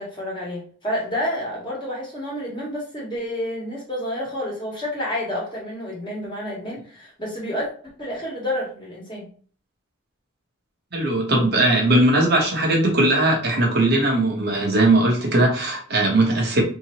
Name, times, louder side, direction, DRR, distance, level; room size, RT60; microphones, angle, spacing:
voice 1, 0.0-7.7 8.0-9.3, left 1 dB, 20° left, -4 dB, 1.3 m, -29 dB
voice 2, 10.9-16.6, right 2 dB, 50° right, 0 dB, 0.9 m, -19 dB
3.9 x 2.8 x 2.9 m, 0.43 s
head